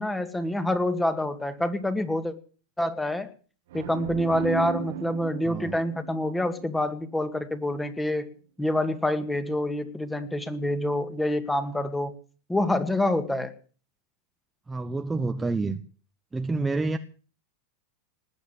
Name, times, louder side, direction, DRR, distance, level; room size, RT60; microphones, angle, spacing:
voice 1, 0.0-2.4 2.8-3.3 3.7-8.3 8.6-12.1 12.5-13.5, left 1 dB, 5° left, 2.1 m, -27 dB
sound 1, 3.7-7.4, right 7 dB, 75° right, 1.6 m, -37 dB
voice 2, 5.4-5.8 14.7-15.8 16.3-17.0, right 3 dB, 10° right, 1.0 m, -28 dB
20.0 x 8.3 x 8.2 m
hypercardioid pair, 115°, 0 cm